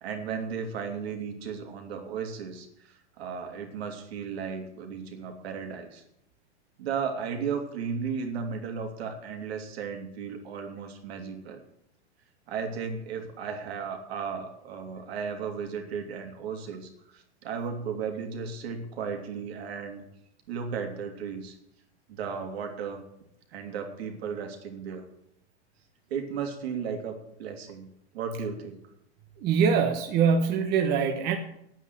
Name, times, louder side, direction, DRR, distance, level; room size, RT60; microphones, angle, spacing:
voice 1, 0.0-6.0 6.8-11.6 12.5-20.0 20.5-21.6 22.1-23.0 23.5-25.1 26.1-27.9 28.1-28.8, right 6 dB, 65° right, 4 dB, 3.0 m, -35 dB
voice 2, 29.4-31.4, right 6 dB, 30° right, 4 dB, 1.1 m, -23 dB
9.3 x 9.1 x 9.5 m, 0.78 s
supercardioid pair, 150°, 34 cm